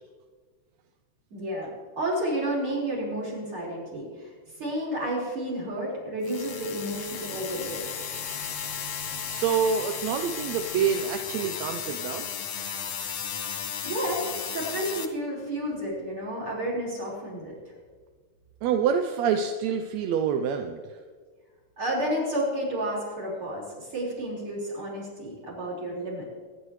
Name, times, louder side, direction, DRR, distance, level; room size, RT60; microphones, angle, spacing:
voice 1, 1.3-4.3 4.6-7.8 13.8-17.6 21.8-26.2, right 1 dB, 40° right, -5 dB, 5.6 m, -31 dB
sound 1, 6.2-15.1, left 7 dB, 55° left, 1.6 m, -34 dB
voice 2, 9.2-12.3 18.6-21.0, right 7 dB, 75° right, 6 dB, 1.8 m, -27 dB
24.5 x 11.0 x 3.2 m, 1.5 s
omnidirectional pair, 3.5 m